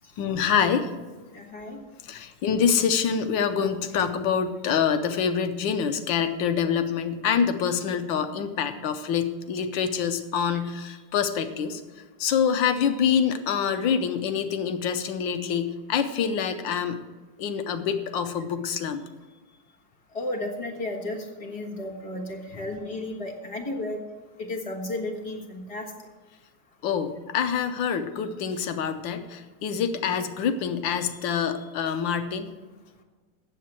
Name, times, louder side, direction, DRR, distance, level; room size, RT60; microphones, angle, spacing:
voice 1, 0.2-0.9 2.0-11.8 12.2-17.0 17.4-19.0 26.8-32.5, left 7 dB, 90° left, 9 dB, 1.5 m, -26 dB
voice 2, 1.3-1.8 20.1-24.0 24.4-25.9, left 2 dB, 20° left, 0 dB, 1.3 m, -33 dB
8.4 x 7.5 x 7.4 m, 1.3 s
omnidirectional pair, 2.0 m